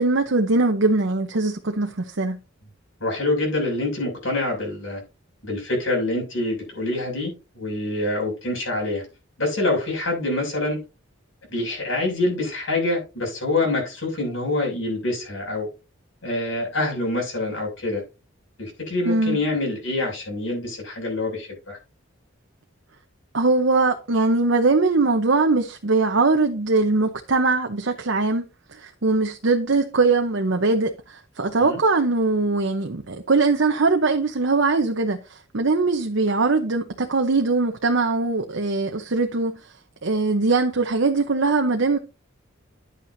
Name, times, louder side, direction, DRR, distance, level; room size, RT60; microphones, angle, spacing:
voice 1, 0.0-2.4 19.1-19.4 23.3-39.6 40.0-42.0, right 3 dB, 65° right, 0.9 m, -21 dB
voice 2, 3.0-5.0 5.4-9.0 9.4-10.8 11.5-15.7 16.2-18.0 18.6-21.8 31.6-31.8, left 2 dB, 75° left, 6.6 m, -26 dB
11.0 x 8.6 x 2.7 m
head